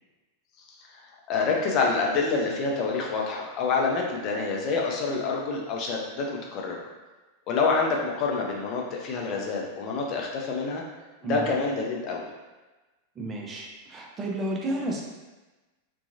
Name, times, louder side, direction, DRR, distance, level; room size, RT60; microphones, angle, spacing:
voice 1, 0.6-6.8 7.5-10.8 11.2-12.3, left 4 dB, 35° left, -1 dB, 0.5 m, -27 dB
voice 2, 13.2-15.0, right 1 dB, 20° right, -1 dB, 0.5 m, -31 dB
2.7 x 2.2 x 2.6 m, 1.2 s
figure-of-eight pair, 90°, 0 cm